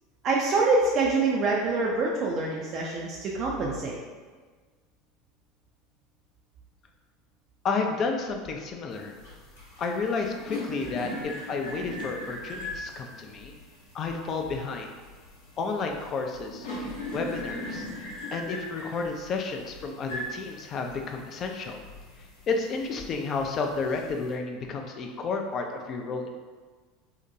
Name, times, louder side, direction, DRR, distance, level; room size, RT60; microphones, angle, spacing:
voice 1, 0.2-4.0, right 3 dB, 45° right, -3 dB, 0.3 m, -25 dB
voice 2, 7.6-9.1 9.8-13.5 13.9-14.9 15.6-16.7 17.1-17.9 18.3-21.8 22.5-26.3, left 4 dB, 40° left, 3 dB, 0.4 m, -31 dB
sound 1, 8.9-24.3, left 1 dB, 75° left, 0.7 m, -40 dB
2.7 x 2.1 x 2.5 m, 1.4 s
hypercardioid pair, 80°, 0 cm